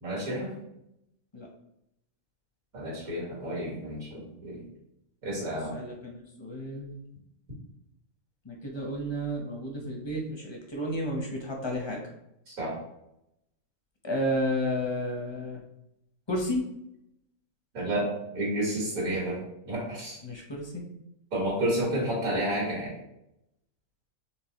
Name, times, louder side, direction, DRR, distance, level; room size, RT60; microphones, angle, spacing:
voice 1, 0.0-0.5 2.7-4.6 5.2-5.7 12.5-12.8 17.7-19.4 19.6-20.2 21.3-22.9, right 1 dB, 85° right, -4 dB, 2.1 m, -30 dB
voice 2, 5.7-7.0 8.4-12.0 14.0-15.6 16.3-16.6 20.2-20.8, equal, 35° left, 0 dB, 0.4 m, -32 dB
4.6 x 3.4 x 2.9 m, 0.83 s
omnidirectional pair, 1.4 m